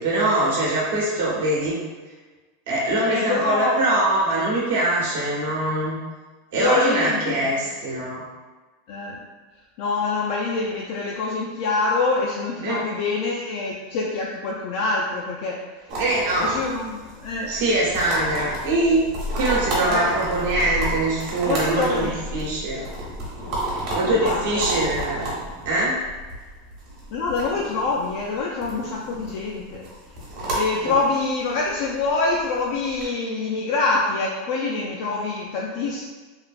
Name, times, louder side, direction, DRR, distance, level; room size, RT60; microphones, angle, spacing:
voice 1, 0.0-1.8 2.7-6.0 6.5-8.2 12.6-12.8 16.0-16.5 17.5-19.1 19.3-22.9 23.9-25.3 25.6-26.0 30.8-30.9, right 2 dB, 65° right, -5 dB, 0.8 m, -23 dB
voice 2, 3.1-3.8 5.2-5.4 6.5-7.6 8.9-9.2 9.8-15.6 16.4-17.6 19.9-20.2 21.4-22.5 24.0-24.4 27.1-29.9 30.5-36.0, left 3 dB, 45° left, -3 dB, 0.3 m, -25 dB
sound 1, 15.9-33.0, right 1 dB, 35° right, 0.9 m, -32 dB
3.1 x 2.5 x 2.4 m, 1.3 s
supercardioid pair, 175°, 0 cm